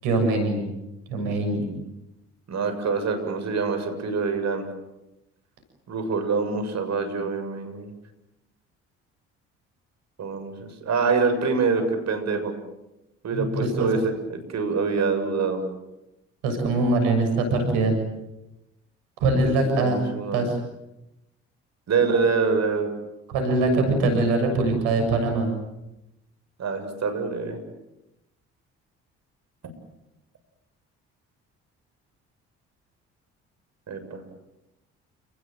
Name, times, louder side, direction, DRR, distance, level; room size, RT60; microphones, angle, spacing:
voice 1, 0.0-0.6 1.1-1.7 13.3-13.9 16.4-18.0 19.2-20.0 20.3-20.6 23.3-25.5, right 2 dB, 80° right, 5 dB, 7.2 m, -22 dB
voice 2, 2.5-4.7 5.9-7.9 10.2-12.5 13.2-15.6 19.4-20.5 21.9-22.9 26.6-27.6 33.9-34.2, right 4 dB, 55° right, 7 dB, 7.3 m, -25 dB
30.0 x 20.5 x 9.2 m, 0.93 s
hypercardioid pair, 55°, 32 cm